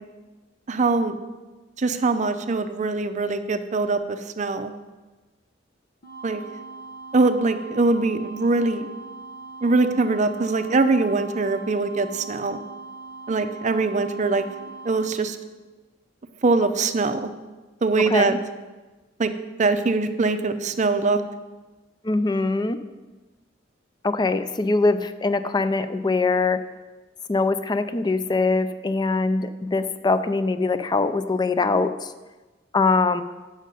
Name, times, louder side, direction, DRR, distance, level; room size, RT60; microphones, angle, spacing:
voice 1, 0.7-1.1 1.8-4.7 6.2-6.4 7.1-8.9 9.6-12.6 13.3-14.4 14.8-15.4 16.4-17.3 17.8-18.4 19.2-19.3 19.6-21.2, right 3 dB, 40° right, 10 dB, 0.5 m, -22 dB
sound 1, 6.0-15.1, right 3 dB, 50° left, 0.9 m, -40 dB
voice 2, 18.0-18.4 22.0-22.8 24.0-26.6 27.3-32.1 32.7-33.2, left 3 dB, 25° left, 11 dB, 0.4 m, -22 dB
9.2 x 6.4 x 5.2 m, 1.2 s
head